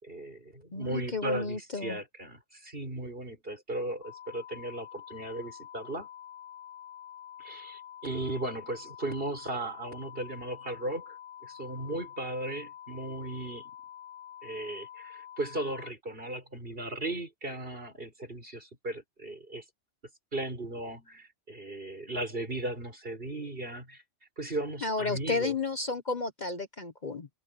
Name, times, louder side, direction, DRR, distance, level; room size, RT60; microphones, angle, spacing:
voice 1, 0.0-6.1 7.4-11.2 11.4-13.7 14.4-19.6 20.3-24.0 24.4-25.5, right 1 dB, 50° right, 5.9 m, -36 dB
voice 2, 0.7-2.0 24.8-27.3, left 3 dB, 40° left, 1.1 m, -32 dB
sound 1, 4.0-15.9, left 10 dB, 80° left, 6.9 m, -47 dB
omnidirectional pair, 1.3 m